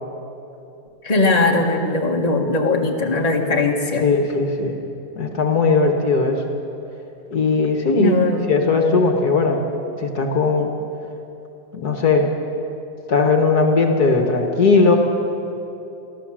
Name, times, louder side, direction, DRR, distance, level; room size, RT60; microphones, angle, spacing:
voice 1, 1.0-4.0 8.0-8.4, left 2 dB, 20° left, 0 dB, 1.8 m, -19 dB
voice 2, 4.0-4.8 5.2-6.4 7.3-8.2 8.5-9.6 10.0-10.7 11.7-12.3 13.1-15.0, left 4 dB, 60° left, 4 dB, 1.9 m, -18 dB
24.0 x 15.0 x 7.5 m, 2.9 s
omnidirectional pair, 2.0 m